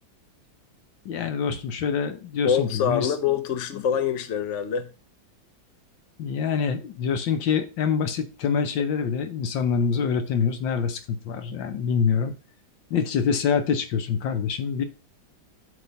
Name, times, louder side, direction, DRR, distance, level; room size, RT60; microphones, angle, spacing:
voice 1, 1.0-3.1 3.7-3.8 6.2-12.3 12.9-14.8, left 6 dB, 75° left, 1.6 m, -25 dB
voice 2, 2.4-4.9, left 8 dB, 50° left, 1.0 m, -25 dB
8.0 x 3.7 x 5.3 m
omnidirectional pair, 2.1 m